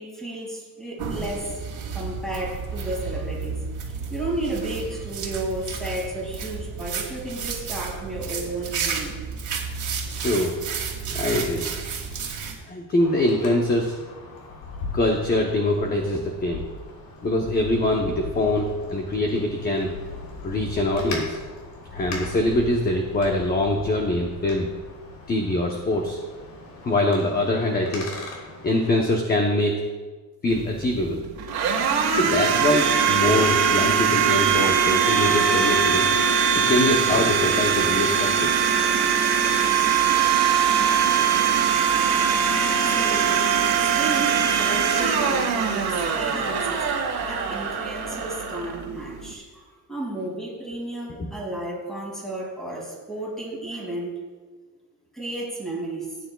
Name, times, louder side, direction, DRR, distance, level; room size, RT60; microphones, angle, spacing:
voice 1, 0.0-1.5 1.9-3.6 3.8-9.2 42.7-43.5 43.9-45.9 46.1-46.9 47.2-54.1 55.1-56.1, right 1 dB, ahead, -3 dB, 2.5 m, -33 dB
sound 1, 1.0-12.6, right 5 dB, 45° right, 2.0 m, -32 dB
voice 2, 10.2-10.5 11.1-11.7 12.7-13.9 14.9-16.6 17.2-19.9 20.4-21.4 21.9-24.7 25.3-26.2 26.8-28.1 28.6-29.7 30.4-31.2 32.1-36.1 36.7-38.6 51.2-51.3, left 1 dB, 25° left, 1 dB, 0.9 m, -23 dB
Wind, 13.0-29.0, left 3 dB, 75° left, 3.4 m, -39 dB
Domestic sounds home sounds, 30.5-49.3, right 7 dB, 65° right, 1.7 m, -22 dB
16.0 x 9.3 x 2.3 m, 1.3 s
cardioid pair, 150°, 40 cm